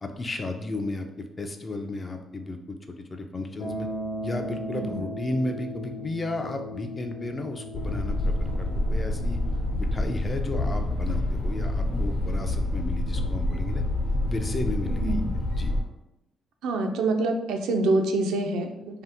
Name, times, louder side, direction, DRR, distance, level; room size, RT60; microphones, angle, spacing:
voice 1, 0.0-3.9 4.2-9.4 9.8-13.8 14.2-15.2 15.5-15.7, left 2 dB, 30° left, 5 dB, 0.4 m, -34 dB
sound 1, 3.6-13.7, equal, 80° left, 1.1 m, -39 dB
sound 2, 7.7-15.8, left 1 dB, 55° left, 1.0 m, -27 dB
voice 2, 15.0-15.3 16.6-19.0, right 2 dB, 90° right, 4 dB, 0.3 m, -26 dB
2.7 x 2.1 x 3.4 m, 0.89 s
cardioid pair, 90°, 0 cm